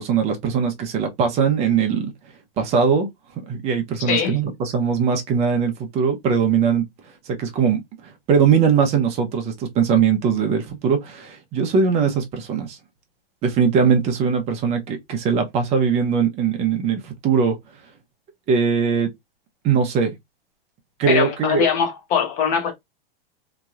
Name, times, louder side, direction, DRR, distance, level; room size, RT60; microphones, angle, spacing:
voice 1, 0.0-2.1 2.6-3.1 3.5-6.9 7.3-12.8 13.4-17.6 18.5-19.1 19.6-20.1 21.0-21.7, right 6 dB, 20° right, 0.7 m, -20 dB
voice 2, 4.1-4.4 21.1-22.7, left 7 dB, 25° left, 0.9 m, -21 dB
3.0 x 2.7 x 2.4 m
supercardioid pair, 155°, 30 cm